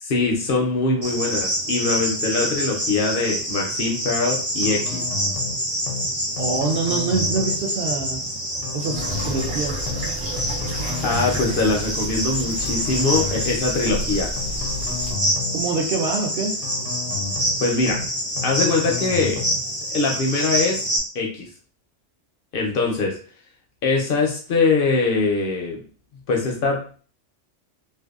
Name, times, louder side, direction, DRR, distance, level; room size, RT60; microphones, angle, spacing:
voice 1, 0.0-5.0 11.0-14.3 17.6-18.0 18.4-19.4 19.9-20.8 21.1-21.5 22.5-23.1 23.8-25.8 26.3-27.0, left 3 dB, 60° left, 0 dB, 0.6 m, -22 dB
Cricket, 1.0-21.0, equal, 20° right, 0.7 m, -27 dB
sound 1, 4.6-5.6 5.9-6.1 6.4-7.6 8.6-9.6 9.9-10.1 10.4-11.6 12.6-13.6 13.9-14.1 14.4-15.6 16.6-17.6 17.9-18.1 18.4-19.6, left 6 dB, 80° left, 0.9 m, -32 dB
voice 2, 6.4-8.3 8.7-9.8 15.5-16.6, right 4 dB, 60° right, 0 dB, 0.6 m, -25 dB
sound 2, 8.9-15.1, equal, 75° right, 1.0 m, -32 dB
2.6 x 2.2 x 2.3 m, 0.41 s
omnidirectional pair, 1.3 m